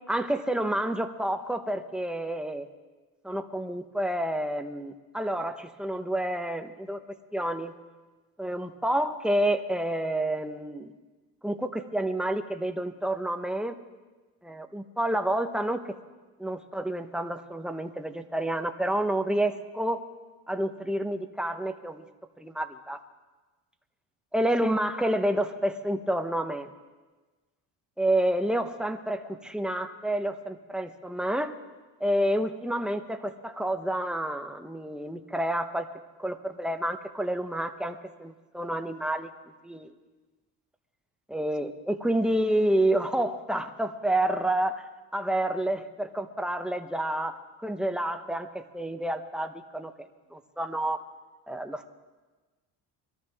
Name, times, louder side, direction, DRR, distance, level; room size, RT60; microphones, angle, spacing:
voice 1, 0.1-2.7 3.2-7.0 7.3-7.7 8.4-10.9 11.4-13.8 14.4-15.8 16.4-20.0 20.5-22.0 22.4-23.0 24.3-26.7 28.0-31.5 32.0-35.9 36.2-39.3 39.6-39.9 41.3-44.8 45.1-49.9 50.3-51.0 51.5-51.9, right 1 dB, ahead, 6 dB, 1.0 m, -29 dB
22.5 x 13.5 x 3.6 m, 1.3 s
cardioid pair, 90°, 41 cm